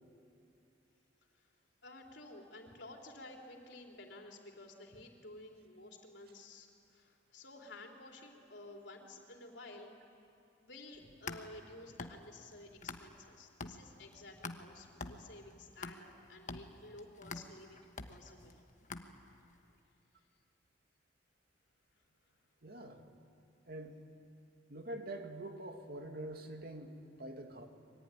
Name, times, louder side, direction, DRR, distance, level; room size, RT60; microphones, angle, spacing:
voice 1, 1.8-9.9 10.6-18.6, left 2 dB, 75° left, 1 dB, 3.8 m, -53 dB
sound 1, 10.9-13.3 13.6-19.5, left 3 dB, 45° left, 1.3 m, -47 dB
voice 2, 22.6-23.1 23.7-24.0 24.7-27.7, right 1 dB, 55° right, 4 dB, 2.4 m, -45 dB
25.0 x 23.0 x 10.0 m, 2.6 s
head